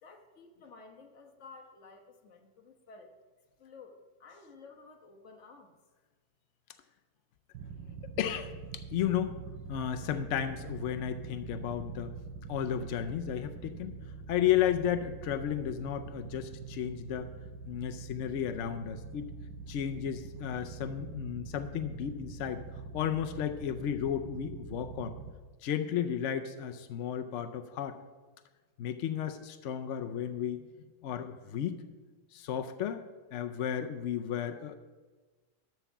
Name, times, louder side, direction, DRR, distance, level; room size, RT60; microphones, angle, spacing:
voice 1, 0.0-3.1 3.6-5.7, left 4 dB, 45° left, 2 dB, 1.4 m, -53 dB
sound 1, 7.5-25.3, right 4 dB, 85° right, 1.5 m, -44 dB
voice 2, 8.2-9.3 9.7-12.1 12.5-14.0 14.3-17.3 17.7-19.3 19.7-22.6 22.9-25.2 25.6-28.0 28.8-30.7 31.0-31.8 32.3-33.0 33.3-34.8, left 10 dB, 75° left, 8 dB, 0.6 m, -33 dB
13.0 x 4.6 x 7.0 m, 1.3 s
omnidirectional pair, 1.9 m